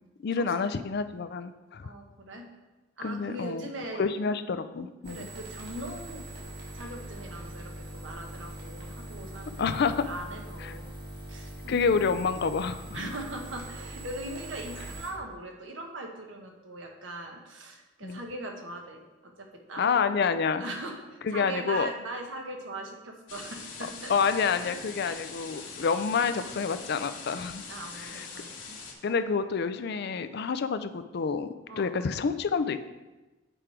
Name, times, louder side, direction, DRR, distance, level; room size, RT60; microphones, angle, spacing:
voice 1, 0.2-1.9 3.0-3.7 4.0-5.3 9.6-10.1 10.6-10.7 11.7-13.1 18.0-18.2 19.8-20.6 21.2-21.9 24.1-27.6 27.9-28.3 29.0-31.5 31.8-32.8, left 5 dB, 60° left, 11 dB, 0.4 m, -28 dB
voice 2, 1.8-2.5 3.0-4.0 5.1-6.2 6.7-10.9 11.3-11.9 12.9-24.1 24.6-24.7 25.0-25.2 27.7-28.8 31.7-32.2, right 1 dB, 85° right, 2 dB, 1.2 m, -40 dB
sound 1, 5.0-15.1, right 1 dB, 60° right, 2.0 m, -42 dB
sound 2, 23.3-28.9, left 4 dB, 85° left, 1.6 m, -43 dB
7.9 x 4.9 x 4.5 m, 1.1 s
head